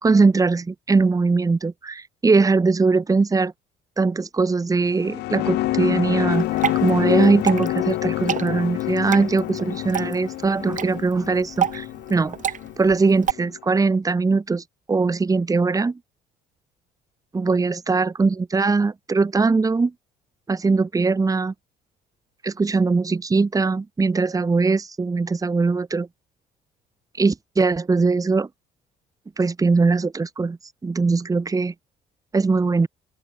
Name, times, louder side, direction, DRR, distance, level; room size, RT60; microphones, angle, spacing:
voice 1, 0.0-3.5 4.0-6.5 6.8-12.4 12.8-16.0 17.3-19.9 20.5-21.5 22.4-26.1 27.2-28.5 29.4-30.6 30.8-31.7 32.3-32.9, right 4 dB, 20° right, 2.0 m, -21 dB
sound 1, 4.8-13.5, left 17 dB, 80° left, 3.6 m, -27 dB
Water / Drip, 6.3-13.3, right 9 dB, 50° right, 3.8 m, -29 dB
open air
cardioid pair, 110°, 17 cm